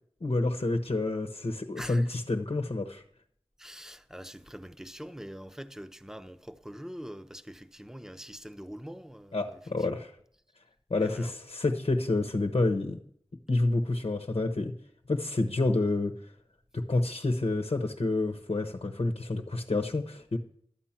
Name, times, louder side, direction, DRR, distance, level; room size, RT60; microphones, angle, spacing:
voice 1, 0.2-3.0 9.3-10.1 10.9-13.0 13.5-14.7 15.1-16.2 16.7-20.4, left 2 dB, 80° left, 1.0 m, -28 dB
voice 2, 1.8-2.1 3.6-9.6 11.0-11.3, equal, 5° right, 0.8 m, -44 dB
12.5 x 8.7 x 5.9 m
wide cardioid pair, 45°, 10 cm